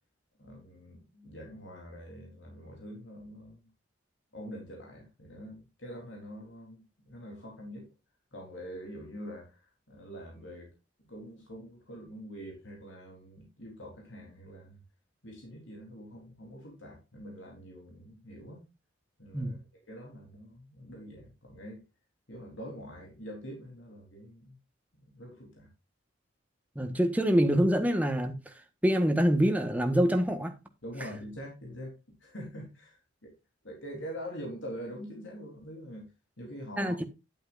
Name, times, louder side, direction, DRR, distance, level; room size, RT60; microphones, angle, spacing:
voice 1, 0.4-3.7 4.3-7.9 8.3-10.7 11.0-14.8 15.2-18.6 19.2-21.8 22.3-24.6 24.9-25.7 30.8-33.3 33.6-36.1 36.4-37.0, equal, 70° left, 3.6 m, -45 dB
voice 2, 26.7-28.5 28.8-30.5 36.8-37.0, equal, 10° right, 1.3 m, -25 dB
11.0 x 8.8 x 2.5 m
head